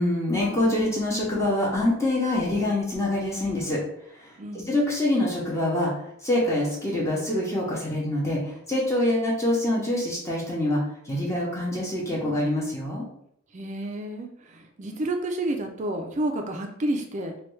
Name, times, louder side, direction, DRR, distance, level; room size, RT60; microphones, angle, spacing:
voice 1, 0.0-3.8 4.1-4.3 4.5-5.9 6.2-13.1, left 1 dB, 15° left, -4 dB, 0.7 m, -25 dB
voice 2, 4.4-4.7 13.5-17.3, right 1 dB, 35° right, 3 dB, 0.4 m, -30 dB
3.1 x 2.3 x 3.1 m, 0.68 s
head